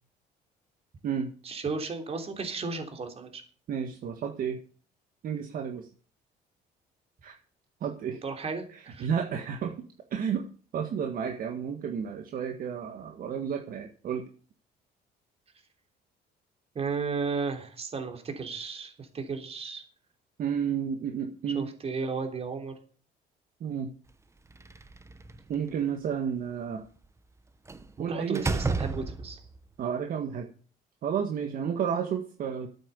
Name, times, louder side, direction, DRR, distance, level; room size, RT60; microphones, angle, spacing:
voice 1, 1.5-3.4 8.2-9.1 16.8-19.8 21.6-22.7 28.1-29.4, right 4 dB, 35° right, 5 dB, 3.4 m, -34 dB
voice 2, 3.7-4.6 5.2-5.9 7.2-7.3 7.8-8.2 8.7-9.7 10.1-10.5 10.7-14.3 20.4-21.7 23.6-23.9 25.5-26.8 28.0-28.5 29.8-30.5 31.0-32.7, right 7 dB, 55° right, 5 dB, 1.7 m, -31 dB
Slam, 24.5-25.5 27.7-27.9 28.3-29.6, right 3 dB, 15° right, 1.0 m, -31 dB
12.5 x 9.0 x 6.9 m, 0.41 s
cardioid pair, 110°, 17 cm